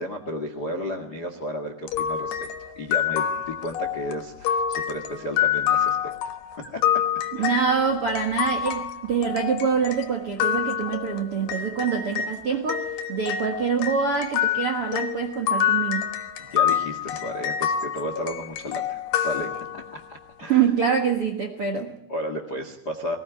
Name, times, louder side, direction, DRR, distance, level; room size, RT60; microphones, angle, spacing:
voice 1, 0.0-2.3 2.7-6.0 6.6-7.1 7.4-7.6 16.4-20.7 22.1-23.2, equal, 45° left, 6 dB, 1.2 m, -33 dB
sound 1, 1.9-12.4 12.7-20.1, left 9 dB, 75° left, 3.4 m, -27 dB
voice 2, 7.4-16.1 20.5-21.9, right 6 dB, 55° right, 4 dB, 1.5 m, -25 dB
21.0 x 19.0 x 9.2 m, 0.81 s
omnidirectional pair, 5.1 m